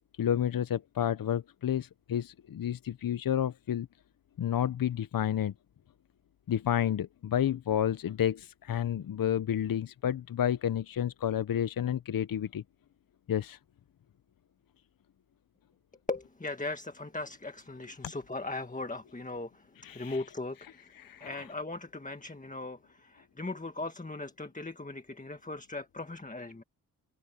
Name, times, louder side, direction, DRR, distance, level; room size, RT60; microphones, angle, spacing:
voice 1, 0.2-3.9 4.4-5.5 6.5-12.6 13.3-13.6 19.8-20.2 21.0-21.4, left 10 dB, 65° left, 0.7 m, -30 dB
voice 2, 16.1-26.6, left 2 dB, 20° left, 1.7 m, -39 dB
open air
cardioid pair, 70°, 38 cm